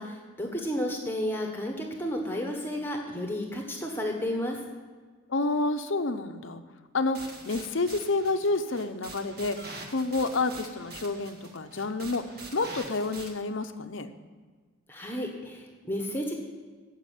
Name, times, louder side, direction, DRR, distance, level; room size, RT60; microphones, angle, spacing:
voice 1, 0.0-4.6 14.9-16.3, equal, 10° left, 2 dB, 1.1 m, -32 dB
voice 2, 5.3-6.6 6.9-9.6 9.9-12.2 12.5-14.1, left 3 dB, 60° left, 9 dB, 0.7 m, -29 dB
sound 1, 7.1-13.3, right 3 dB, 45° right, 1.6 m, -44 dB
9.7 x 7.5 x 9.2 m, 1.5 s
head